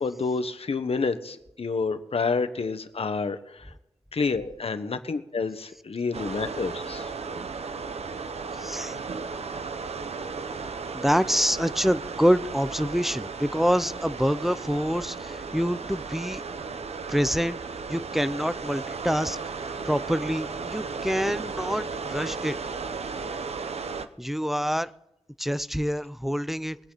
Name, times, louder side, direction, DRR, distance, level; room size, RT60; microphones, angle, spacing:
voice 1, 0.0-3.7 4.1-7.1, left 4 dB, 65° left, 10 dB, 1.2 m, -29 dB
sound 1, 6.1-24.1, right 4 dB, 75° right, 0.9 m, -35 dB
voice 2, 8.6-9.0 10.9-16.4 17.1-17.6 17.9-19.4 19.9-22.6 24.2-24.9 25.4-26.8, equal, ahead, 15 dB, 0.5 m, -26 dB
22.5 x 8.8 x 4.0 m, 0.88 s
wide cardioid pair, 100°, 11 cm